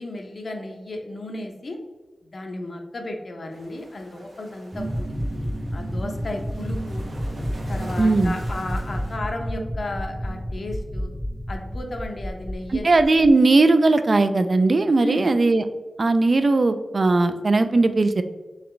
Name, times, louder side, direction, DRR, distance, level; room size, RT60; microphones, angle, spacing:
voice 1, 0.0-1.8 2.2-7.1 7.7-11.1 11.5-12.9 15.0-15.3, left 2 dB, 55° left, 3 dB, 0.7 m, -34 dB
sound 1, 3.5-9.2, right 1 dB, 80° right, 0.8 m, -45 dB
sound 2, 4.7-13.3, equal, ahead, 0.6 m, -30 dB
voice 2, 8.0-8.3 12.7-15.6 16.0-18.2, right 3 dB, 50° right, 10 dB, 0.3 m, -18 dB
4.0 x 3.3 x 3.1 m, 1.2 s
wide cardioid pair, 90°, 0 cm